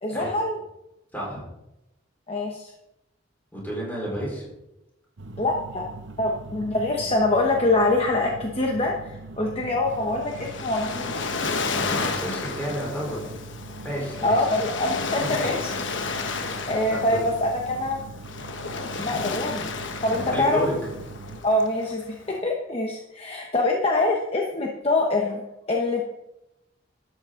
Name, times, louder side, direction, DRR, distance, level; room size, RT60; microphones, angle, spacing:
voice 1, 0.0-0.6 2.3-2.7 5.4-5.9 6.2-11.1 14.2-15.7 16.1-18.0 19.0-19.7 20.0-20.6 21.4-25.4 25.7-26.0, left 2 dB, 30° left, 0 dB, 1.0 m, -25 dB
voice 2, 1.1-1.4 3.5-4.5 11.7-13.4 13.8-14.4 15.1-15.4 16.9-17.3 20.1-20.7, right 1 dB, 10° left, -4 dB, 4.5 m, -31 dB
sound 1, 5.2-21.4, right 2 dB, 65° right, 0.8 m, -41 dB
Waves surf, 9.9-22.3, left 4 dB, 65° left, 1.1 m, -32 dB
12.0 x 8.4 x 3.8 m, 0.90 s
head